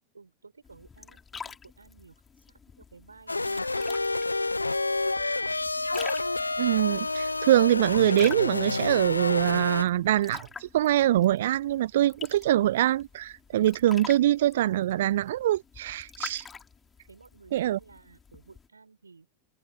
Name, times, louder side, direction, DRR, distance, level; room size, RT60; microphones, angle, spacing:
voice 1, 0.1-3.6 4.1-4.7 5.0-5.5 17.1-19.3, right 4 dB, 75° right, 5.8 m, -52 dB
sound 1, 0.6-18.7, left 6 dB, 15° left, 3.5 m, -47 dB
sound 2, 3.3-9.8, left 2 dB, 80° left, 0.9 m, -29 dB
voice 2, 6.6-16.4 17.5-17.8, right 13 dB, 60° right, 0.3 m, -24 dB
figure-of-eight pair, 90°, 0 cm